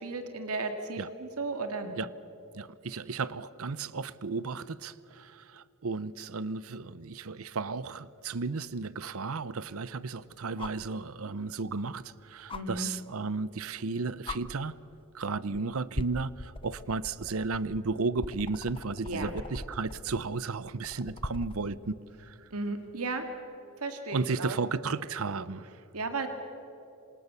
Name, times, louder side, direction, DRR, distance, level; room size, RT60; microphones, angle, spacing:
voice 1, 0.0-1.9 12.5-12.9 19.0-19.3 22.5-23.2 23.8-24.6 25.9-26.3, right 3 dB, 85° right, 6 dB, 2.2 m, -34 dB
voice 2, 2.5-14.7 15.1-22.3 24.1-25.7, right 4 dB, 70° right, 18 dB, 0.7 m, -34 dB
sound 1, 8.4-8.5 10.6-10.9 12.5-12.6 13.8-13.9 14.2-14.4 15.3-15.6 15.9-21.6 23.3-23.4, left 2 dB, 25° left, 0.7 m, -41 dB
27.0 x 27.0 x 7.1 m, 2.9 s
head